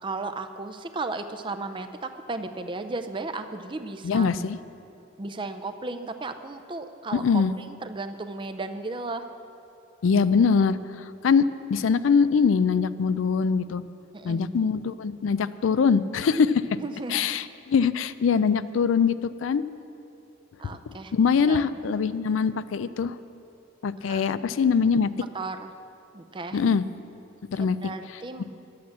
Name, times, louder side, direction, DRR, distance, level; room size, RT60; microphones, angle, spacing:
voice 1, 0.0-4.3 5.2-9.3 14.1-14.4 16.8-17.3 20.6-21.1 21.4-21.7 24.1-24.2 25.3-25.7 26.1-26.6 27.6-28.4, right 3 dB, 25° right, 8 dB, 0.5 m, -35 dB
voice 2, 4.0-4.6 7.1-7.5 10.0-10.8 11.2-13.8 14.2-16.6 17.1-19.6 20.6-20.8 21.1-23.2 23.8-25.1 26.5-26.8 27.5-27.8, left 5 dB, 80° left, 14 dB, 0.4 m, -23 dB
11.0 x 8.6 x 7.4 m, 2.9 s
head